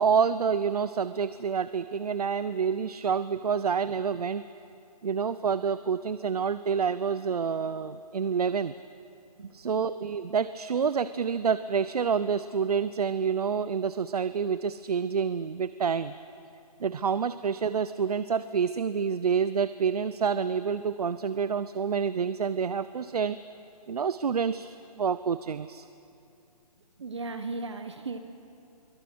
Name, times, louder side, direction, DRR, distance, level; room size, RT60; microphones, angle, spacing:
voice 1, 0.0-4.4 5.0-8.7 9.5-16.1 16.8-23.4 23.9-25.9, right 6 dB, 75° right, 14 dB, 0.7 m, -28 dB
voice 2, 27.0-28.2, right 3 dB, 45° right, 8 dB, 1.2 m, -36 dB
26.5 x 23.5 x 6.2 m, 2.6 s
hypercardioid pair, 175°, 20 cm